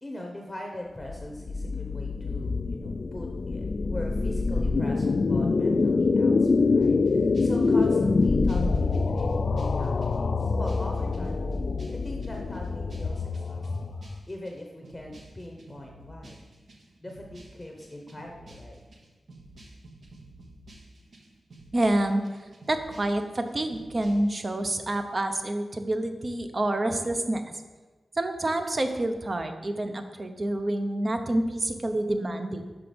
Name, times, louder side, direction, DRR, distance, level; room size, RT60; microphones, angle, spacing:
voice 1, 0.0-11.5 11.9-13.7 14.3-16.5 17.0-18.8, left 1 dB, 15° left, 1 dB, 0.8 m, -41 dB
sound 1, 1.0-14.2, left 4 dB, 55° left, 0.3 m, -25 dB
sound 2, 6.8-24.5, right 1 dB, 65° right, 1.1 m, -51 dB
voice 2, 21.7-27.6 28.1-32.6, right 1 dB, 35° right, 7 dB, 0.7 m, -28 dB
5.8 x 5.8 x 5.1 m, 1.3 s
wide cardioid pair, 100°, 0 cm